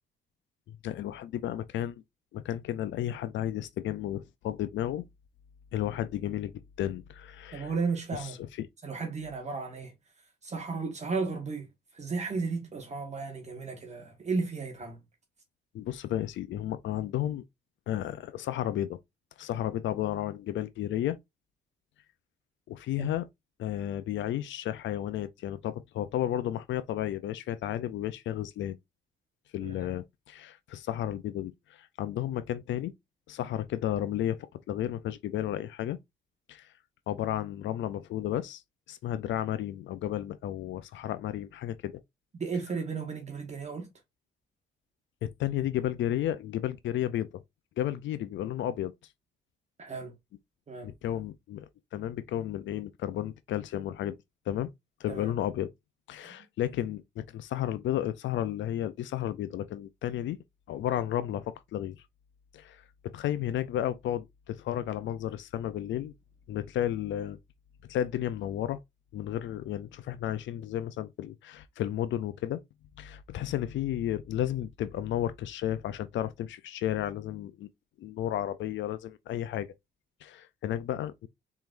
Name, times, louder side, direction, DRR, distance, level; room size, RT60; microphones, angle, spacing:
voice 1, 0.7-2.0 2.3-5.0 5.7-7.7 8.1-8.3 8.6-8.7 15.7-17.4 17.9-19.0 19.4-21.2 22.7-23.3 23.6-28.8 29.5-32.9 33.3-34.4 34.7-36.0 36.5-36.7 37.1-38.6 38.9-42.0 45.2-47.4 47.8-48.9 50.8-54.1 54.5-54.7 55.0-55.7 56.1-60.4 60.7-62.0 62.5-66.1 66.5-67.4 67.9-68.8 69.1-72.6 73.0-77.7 78.0-79.7 80.2-81.3, left 12 dB, 70° left, 0.5 m, -33 dB
voice 2, 7.5-8.4 8.8-9.9 10.4-11.7 11.9-15.0 23.0-23.2 29.6-29.9 42.3-43.9 49.8-50.1 50.7-50.9 55.1-55.4 56.2-56.4, right 4 dB, 35° right, 1.3 m, -34 dB
4.5 x 3.8 x 2.5 m
cardioid pair, 90°, 20 cm